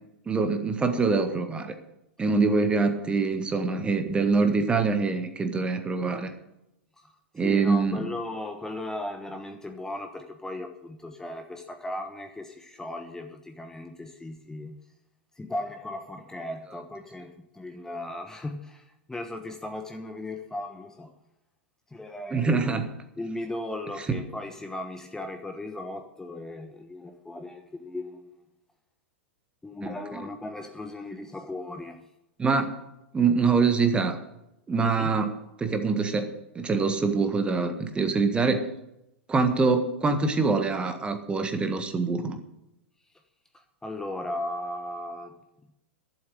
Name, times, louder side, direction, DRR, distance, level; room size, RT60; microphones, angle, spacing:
voice 1, 0.3-1.7 2.2-6.3 7.3-8.0 22.3-22.9 24.1-24.2 29.8-30.2 32.4-32.8 33.1-34.2 34.7-35.3 35.6-38.7 39.3-42.4, right 4 dB, 15° right, 8 dB, 1.5 m, -24 dB
voice 2, 7.4-14.8 15.4-21.1 21.9-22.8 23.2-28.2 29.6-32.0 34.8-35.1 43.5-45.3, left 1 dB, 10° left, 6 dB, 1.2 m, -37 dB
12.0 x 7.5 x 8.8 m, 0.86 s
figure-of-eight pair, 100°, 6 cm